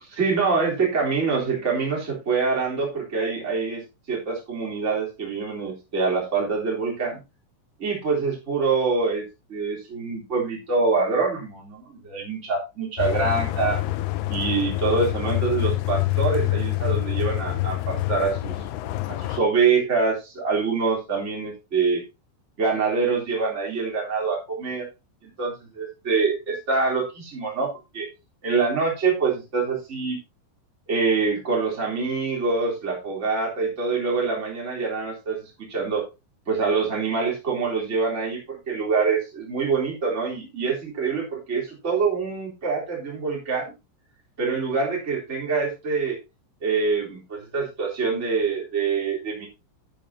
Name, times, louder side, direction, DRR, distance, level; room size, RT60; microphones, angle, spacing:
voice 1, 0.2-7.2 7.8-13.8 14.3-18.5 19.1-22.0 22.6-24.9 25.2-28.1 28.4-30.2 30.9-36.0 36.4-43.7 44.4-46.2 46.6-49.5, right 4 dB, 15° right, -2 dB, 3.3 m, -25 dB
sound 1, 13.0-19.4, left 17 dB, 85° left, 2.3 m, -26 dB
12.0 x 8.7 x 2.8 m, 0.25 s
omnidirectional pair, 5.6 m